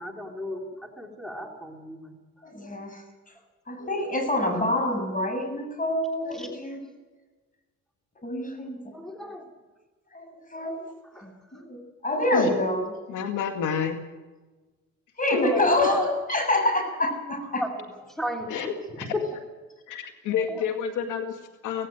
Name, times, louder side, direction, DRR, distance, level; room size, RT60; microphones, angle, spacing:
voice 1, 0.0-2.1 6.4-6.5 8.9-9.5 11.1-11.2 15.4-16.1 17.6-17.7 18.2-18.5 19.0-19.3 20.4-20.6, left 1 dB, ahead, 3 dB, 3.2 m, -33 dB
voice 2, 2.4-3.0 3.7-6.8 8.2-8.9 10.1-10.3 10.5-10.8 11.2-12.9 15.2-17.6, left 1 dB, 25° left, 5 dB, 7.0 m, -26 dB
voice 3, 13.1-14.0 15.3-15.4 18.5-19.2 19.9-21.9, left 7 dB, 85° left, 6 dB, 2.1 m, -29 dB
17.5 x 16.5 x 9.1 m, 1.2 s
cardioid pair, 90°, 30 cm